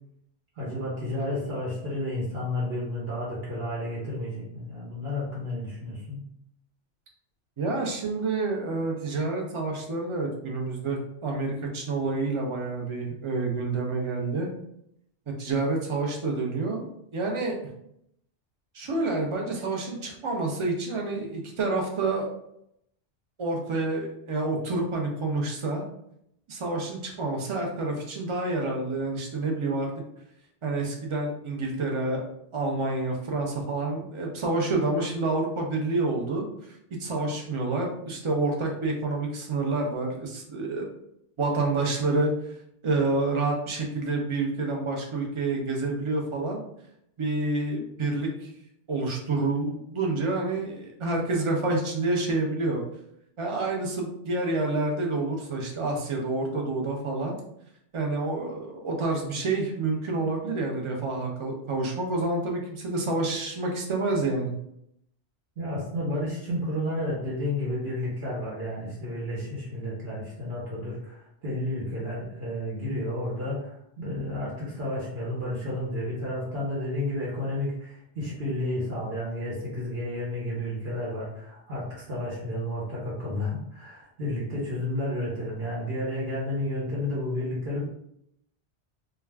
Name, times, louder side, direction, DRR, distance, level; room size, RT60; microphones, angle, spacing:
voice 1, 0.6-6.2 65.6-87.8, left 1 dB, 65° right, -6 dB, 1.0 m, -31 dB
voice 2, 7.6-14.5 15.3-16.8 17.1-17.6 18.7-22.3 23.4-25.8 26.5-29.9 30.6-32.2 32.5-40.8 41.4-42.3 42.8-46.6 47.2-48.5 48.9-52.8 53.4-57.4 57.9-64.5, right 3 dB, 45° right, 0 dB, 0.4 m, -28 dB
2.3 x 2.1 x 3.3 m, 0.75 s
omnidirectional pair, 1.2 m